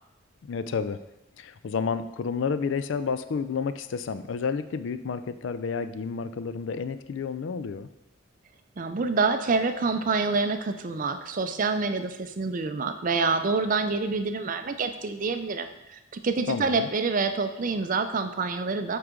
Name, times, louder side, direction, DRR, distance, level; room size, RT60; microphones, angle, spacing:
voice 1, 0.5-1.0 1.4-7.9 16.5-16.9, left 5 dB, 65° left, 12 dB, 0.4 m, -30 dB
voice 2, 8.8-19.0, right 4 dB, 40° right, 9 dB, 0.5 m, -27 dB
7.9 x 4.8 x 3.7 m, 0.99 s
head